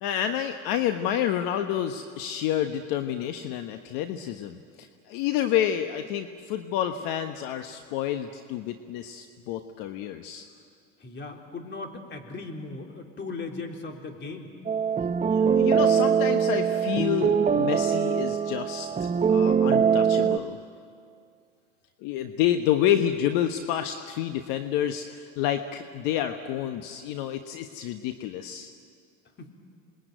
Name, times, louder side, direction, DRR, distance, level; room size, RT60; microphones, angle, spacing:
voice 1, 0.0-10.4 15.2-20.6 22.0-28.7, left 10 dB, 60° left, 7 dB, 1.3 m, -29 dB
voice 2, 11.0-14.5 29.4-29.5, left 3 dB, 30° left, 3 dB, 3.8 m, -38 dB
sound 1, 14.7-20.4, right 7 dB, 20° right, 0.8 m, -23 dB
27.5 x 21.0 x 9.2 m, 2.3 s
hypercardioid pair, 90°, 38 cm